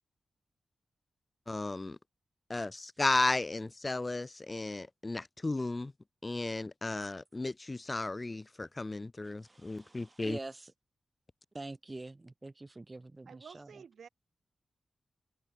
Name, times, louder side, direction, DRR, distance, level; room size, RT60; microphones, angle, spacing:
voice 1, 1.5-2.0 2.5-5.9 6.2-10.4, left 2 dB, 25° left, 1.5 m, -34 dB
voice 2, 9.4-10.7 11.5-13.8, right 2 dB, 25° right, 1.1 m, -45 dB
voice 3, 13.3-14.1, right 6 dB, 80° right, 2.2 m, -51 dB
wide cardioid pair, 115°, 0 cm